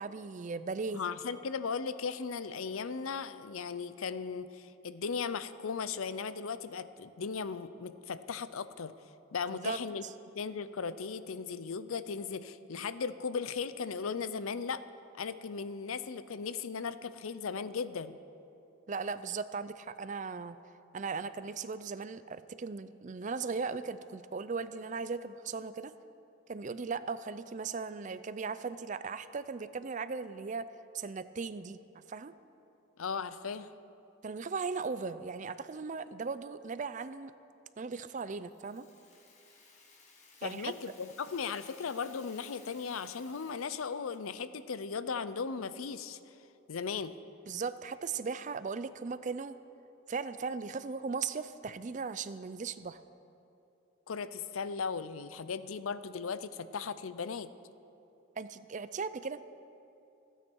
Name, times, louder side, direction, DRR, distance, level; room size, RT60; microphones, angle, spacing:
voice 1, 0.0-1.0 9.5-9.8 18.9-20.6 20.9-25.9 26.5-30.7 30.9-31.8 32.1-32.3 34.2-37.3 37.8-38.9 40.4-40.7 47.5-49.6 50.1-53.0 58.4-59.4, right 4 dB, 35° right, 14 dB, 0.4 m, -37 dB
voice 2, 0.9-8.9 9.3-10.1 10.3-14.8 15.2-18.2 33.0-33.7 40.4-46.3 46.7-47.1 54.1-57.5, left 5 dB, 90° left, 14 dB, 0.6 m, -37 dB
Rattle (instrument), 38.5-44.4, left 4 dB, 35° left, 1.8 m, -59 dB
26.5 x 9.1 x 4.6 m, 2.8 s
head